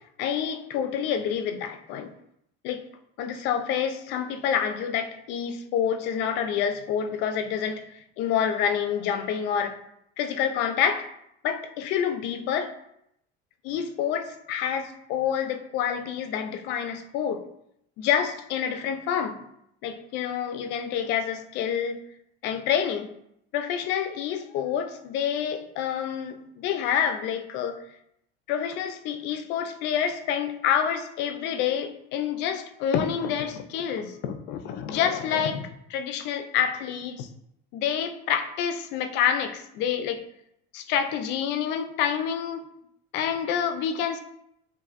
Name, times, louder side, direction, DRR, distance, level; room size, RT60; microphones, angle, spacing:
voice 1, 0.2-2.1 2.6-2.8 3.2-7.8 8.2-9.8 10.2-11.1 11.4-12.7 13.6-17.4 18.0-19.4 19.8-22.0 22.4-23.1 23.5-27.8 28.5-37.3 37.7-40.2 40.7-42.6 43.1-44.2, left 8 dB, 55° left, 8 dB, 0.5 m, -27 dB
7.7 x 2.6 x 2.5 m, 0.77 s
cardioid pair, 145°, 21 cm